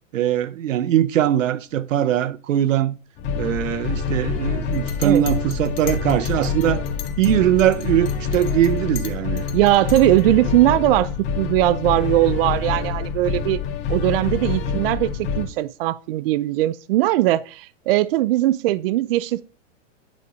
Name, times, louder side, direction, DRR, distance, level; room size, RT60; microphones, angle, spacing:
voice 1, 0.1-3.0 3.4-6.8 7.2-9.5, right 11 dB, 90° right, 0.8 m, -21 dB
sound 1, 3.2-15.4, left 6 dB, 30° left, 2.6 m, -26 dB
Chink clink, 4.7-7.3 7.6-10.3, left 12 dB, 50° left, 1.5 m, -39 dB
voice 2, 9.5-11.1 11.4-13.6 13.9-19.4, right 16 dB, 50° right, 0.5 m, -19 dB
9.8 x 4.9 x 4.0 m
hypercardioid pair, 145°, 37 cm